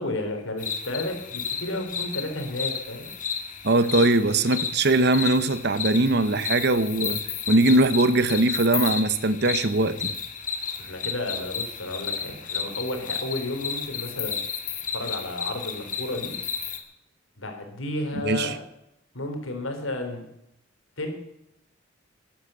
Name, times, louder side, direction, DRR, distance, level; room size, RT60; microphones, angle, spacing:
voice 1, 0.0-3.1 10.8-14.4 14.9-16.3 17.4-18.6 19.1-20.2 21.0-21.1, left 2 dB, 80° left, 3.9 m, -32 dB
sound 1, 0.6-16.8, left 6 dB, 40° left, 1.9 m, -32 dB
voice 2, 3.6-7.2 7.5-10.1 18.2-18.5, right 2 dB, 55° right, 1.0 m, -21 dB
14.5 x 10.5 x 7.9 m
head